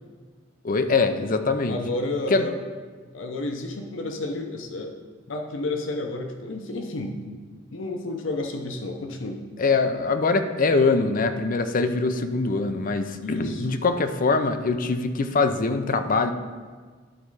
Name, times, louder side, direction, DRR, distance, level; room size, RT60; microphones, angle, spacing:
voice 1, 0.6-1.8 2.3-2.4 9.6-16.3, left 3 dB, 45° left, 8 dB, 0.5 m, -23 dB
voice 2, 1.7-2.5 3.1-4.9 5.3-7.3 7.7-9.4 13.2-13.7, left 2 dB, 80° left, 3 dB, 0.7 m, -31 dB
11.0 x 4.1 x 4.8 m, 1.5 s
head